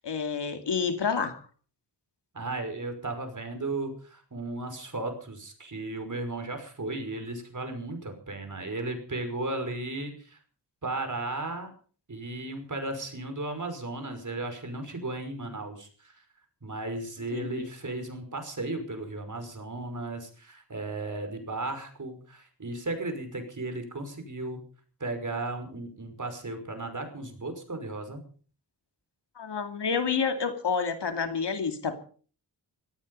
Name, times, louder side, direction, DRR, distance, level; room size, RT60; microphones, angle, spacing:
voice 1, 0.0-1.4 17.3-17.7 29.4-32.0, left 5 dB, 80° left, 7 dB, 2.6 m, -29 dB
voice 2, 2.3-10.4 10.8-11.7 12.1-16.1 16.6-24.6 25.0-28.2, right 2 dB, 45° right, 7 dB, 5.6 m, -35 dB
18.0 x 14.0 x 5.5 m, 0.43 s
wide cardioid pair, 75°, 41 cm